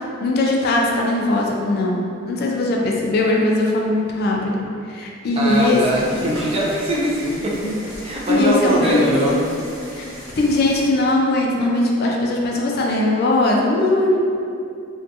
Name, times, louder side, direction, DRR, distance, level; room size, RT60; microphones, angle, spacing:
voice 1, 0.2-2.0 2.2-4.6 4.9-5.8 7.6-7.7 8.3-9.4 9.9-10.1 10.4-14.2, left 2 dB, 55° left, -1 dB, 0.3 m, -19 dB
voice 2, 5.4-7.7 8.0-9.3, right 1 dB, 30° right, -4 dB, 0.4 m, -21 dB
sound 1, 5.5-10.8, equal, 70° right, 0.9 m, -38 dB
2.5 x 2.2 x 2.6 m, 2.5 s
head